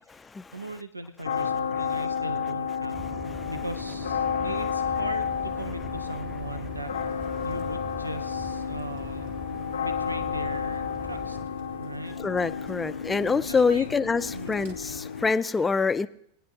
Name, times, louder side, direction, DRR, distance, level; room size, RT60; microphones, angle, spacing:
voice 1, 0.5-7.0 7.4-9.3 9.8-11.4 11.8-12.2 13.4-13.9 14.3-14.6, right 2 dB, 85° right, 0.5 m, -39 dB
sound 1, 1.2-15.3, left 6 dB, 65° left, 0.6 m, -31 dB
sound 2, 2.9-11.4, left 1 dB, 10° right, 1.0 m, -42 dB
Bird, 5.2-15.0, right 2 dB, 55° right, 1.8 m, -51 dB
voice 2, 12.2-16.1, left 4 dB, 15° left, 0.4 m, -26 dB
21.0 x 10.0 x 2.7 m
figure-of-eight pair, 90°, 0 cm